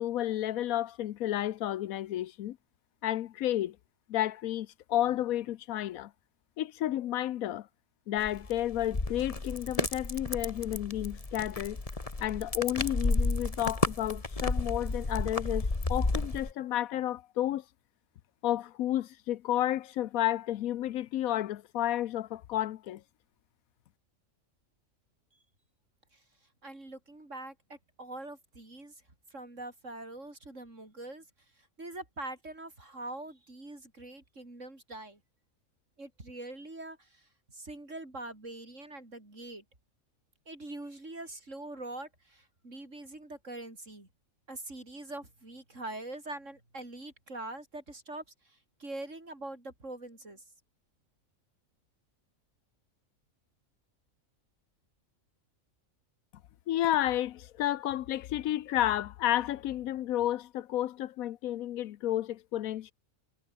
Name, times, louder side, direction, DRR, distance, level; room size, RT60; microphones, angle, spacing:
voice 1, 0.0-2.6 3.0-3.8 4.1-6.1 6.6-7.7 8.1-11.8 12.2-17.6 18.4-23.0 56.7-62.9, left 13 dB, 90° left, 1.1 m, -31 dB
sound 1, 8.2-16.5, left 3 dB, 25° left, 1.9 m, -32 dB
voice 2, 26.6-28.9 29.3-31.3 31.6-35.2 36.0-39.6 40.5-44.1 44.5-50.4, right 2 dB, 60° right, 6.3 m, -43 dB
omnidirectional pair, 1.4 m